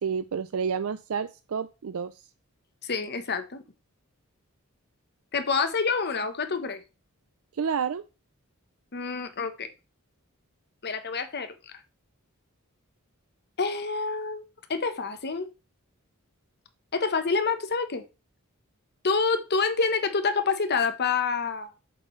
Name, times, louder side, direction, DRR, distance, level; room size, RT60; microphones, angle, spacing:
voice 1, 0.0-2.1 7.5-8.0, right 6 dB, 70° right, 0.4 m, -29 dB
voice 2, 2.8-3.6 5.3-6.8 8.9-9.7 10.8-11.5 13.6-15.5 16.9-18.0 19.0-21.7, left 4 dB, 50° left, 1.0 m, -27 dB
7.6 x 7.5 x 3.2 m
head